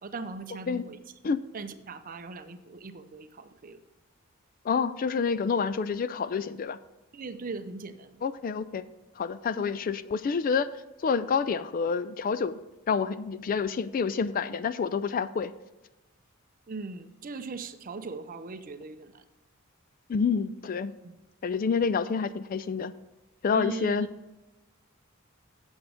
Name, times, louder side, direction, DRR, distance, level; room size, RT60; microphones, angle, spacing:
voice 1, 0.0-1.0 1.5-3.8 7.1-8.1 9.6-9.7 16.7-19.2 21.0-21.1 23.5-24.1, right 3 dB, 40° right, 10 dB, 0.6 m, -39 dB
voice 2, 4.6-6.8 8.2-8.9 9.2-10.7 11.0-12.6 12.9-15.5 20.1-21.0 21.4-22.9 23.4-24.1, left 5 dB, 40° left, 15 dB, 0.3 m, -28 dB
8.2 x 7.1 x 5.0 m, 1.1 s
head